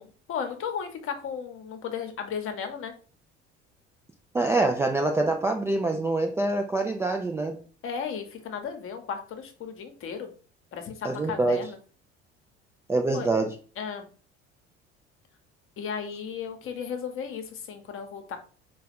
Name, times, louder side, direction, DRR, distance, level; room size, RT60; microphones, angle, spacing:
voice 1, 0.0-2.9 7.8-10.3 10.7-11.8 13.1-13.3 13.8-14.1 15.8-18.4, left 7 dB, 40° left, 6 dB, 1.0 m, -35 dB
voice 2, 4.3-7.6 11.0-11.6 12.9-13.5, right 2 dB, 10° right, 3 dB, 0.3 m, -25 dB
4.6 x 2.3 x 3.4 m, 0.38 s
figure-of-eight pair, 60°, 34 cm